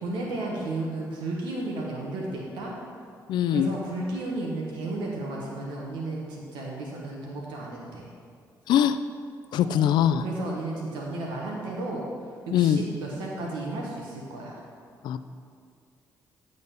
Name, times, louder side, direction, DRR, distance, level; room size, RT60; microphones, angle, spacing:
voice 1, 0.0-2.7 3.5-8.1 9.6-9.9 10.2-12.0 12.5-14.6, right 2 dB, 85° right, -2 dB, 1.4 m, -33 dB
voice 2, 3.3-3.7 8.7-9.0 9.5-10.2 12.5-12.8 15.0-15.2, left 10 dB, 80° left, 12 dB, 0.4 m, -22 dB
11.0 x 4.0 x 6.9 m, 2.2 s
cardioid pair, 70°, 8 cm